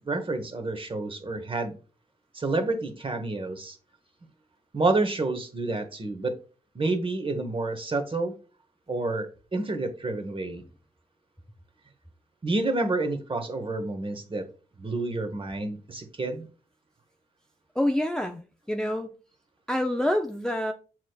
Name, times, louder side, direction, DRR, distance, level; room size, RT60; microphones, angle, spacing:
voice 1, 0.0-1.7 2.3-3.8 4.7-6.3 6.7-8.3 8.9-10.6 12.4-14.4 14.8-16.5, right 2 dB, 30° right, 1.1 m, -29 dB
voice 2, 17.7-18.4 18.7-19.1 19.7-20.7, left 1 dB, 5° left, 0.5 m, -26 dB
7.3 x 3.1 x 2.3 m
supercardioid pair, 45°, 17 cm